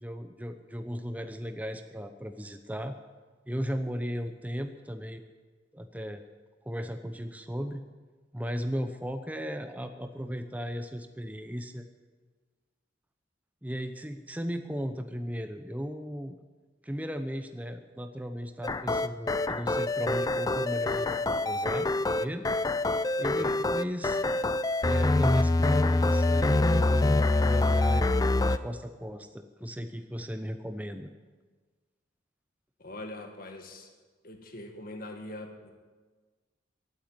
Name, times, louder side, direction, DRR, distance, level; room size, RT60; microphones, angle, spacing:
voice 1, 0.0-2.9 3.5-5.2 5.7-6.2 6.6-7.8 8.3-11.9 13.6-16.4 16.8-22.5 23.2-24.2 24.8-31.1, equal, 10° right, 7 dB, 0.8 m, -36 dB
sound 1, 18.6-28.6, left 2 dB, 20° left, 0.4 m, -25 dB
voice 2, 23.2-23.6 32.8-33.9 34.2-35.7, left 1 dB, 50° left, 4 dB, 2.0 m, -42 dB
16.0 x 9.4 x 9.5 m, 1.4 s
head